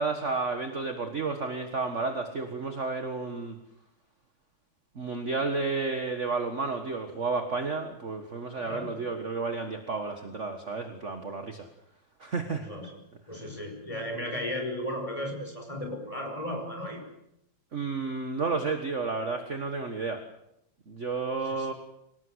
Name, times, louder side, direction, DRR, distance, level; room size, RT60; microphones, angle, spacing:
voice 1, 0.0-3.6 5.0-11.7 12.2-12.7 17.7-20.2 20.9-21.7, right 4 dB, 35° right, 7 dB, 1.7 m, -31 dB
voice 2, 8.5-8.9 12.5-12.9 13.3-17.0 21.4-21.7, left 1 dB, 15° left, 3 dB, 5.8 m, -35 dB
25.5 x 18.0 x 8.1 m, 0.81 s
omnidirectional pair, 2.4 m